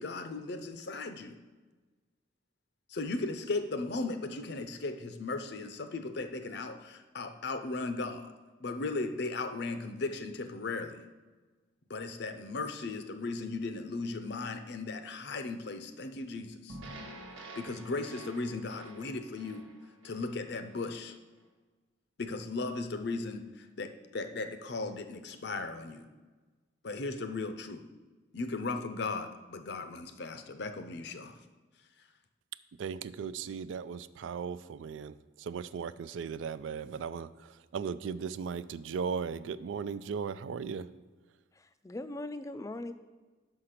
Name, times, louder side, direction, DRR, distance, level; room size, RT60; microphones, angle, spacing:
voice 1, 0.0-1.4 2.9-8.3 8.6-11.0 11.9-16.8 17.5-19.6 20.0-21.2 22.2-26.1 26.8-27.9 28.3-31.3, left 3 dB, 60° left, 8 dB, 0.6 m, -37 dB
sound 1, 16.7-21.0, right 2 dB, 90° right, 1.2 m, -49 dB
voice 2, 32.8-40.9, right 6 dB, 70° right, 15 dB, 0.3 m, -37 dB
voice 3, 41.5-42.9, left 2 dB, 15° left, 11 dB, 0.3 m, -40 dB
6.5 x 5.8 x 5.8 m, 1.3 s
head